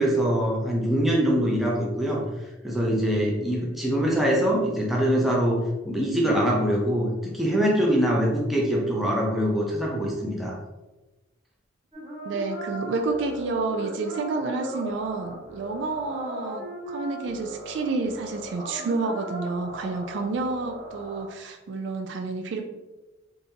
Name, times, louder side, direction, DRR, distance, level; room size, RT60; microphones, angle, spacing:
voice 1, 0.0-10.6, equal, ahead, -4 dB, 0.6 m, -24 dB
sound 1, 11.9-21.2, right 1 dB, 30° right, 1.2 m, -38 dB
voice 2, 12.2-22.6, right 3 dB, 60° right, 5 dB, 0.3 m, -29 dB
3.5 x 2.7 x 2.8 m, 1.1 s
head